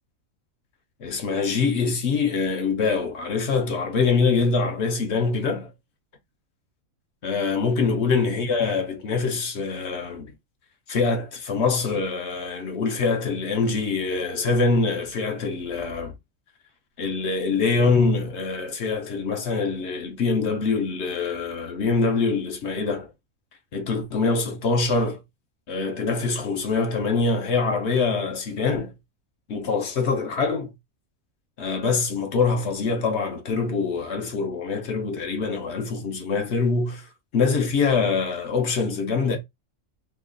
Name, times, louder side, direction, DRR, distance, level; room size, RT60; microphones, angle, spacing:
voice 1, 1.0-5.7 7.2-10.3 10.9-16.1 17.0-23.1 23.7-25.2 25.7-28.9 29.5-30.7 31.6-37.1 37.3-39.4, left 4 dB, 60° left, 0.9 m, -24 dB
3.0 x 2.3 x 3.7 m
omnidirectional pair, 1.5 m